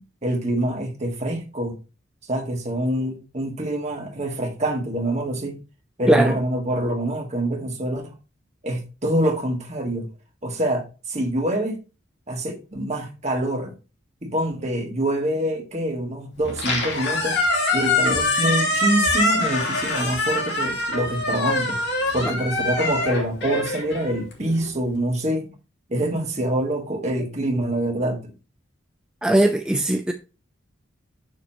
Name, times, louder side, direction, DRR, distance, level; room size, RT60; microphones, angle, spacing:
voice 1, 0.2-1.8 2.3-5.6 6.0-8.1 8.6-10.1 10.4-11.8 12.3-13.7 14.2-17.4 17.7-21.8 22.1-25.5 25.9-28.3, right 1 dB, 35° right, 1.7 m, -25 dB
voice 2, 6.1-6.4 29.2-30.1, right 1 dB, 5° right, 0.4 m, -19 dB
Squeak, 16.4-24.7, left 2 dB, 55° left, 3.0 m, -24 dB
7.3 x 6.8 x 2.9 m
head